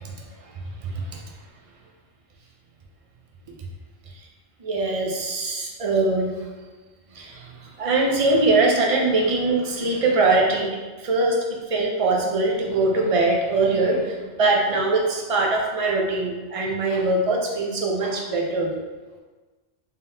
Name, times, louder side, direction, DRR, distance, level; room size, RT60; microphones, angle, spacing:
voice 1, 0.8-1.2 4.6-6.5 7.1-18.8, right 2 dB, 45° right, 0 dB, 0.5 m, -22 dB
3.7 x 3.6 x 2.7 m, 1.3 s
omnidirectional pair, 1.2 m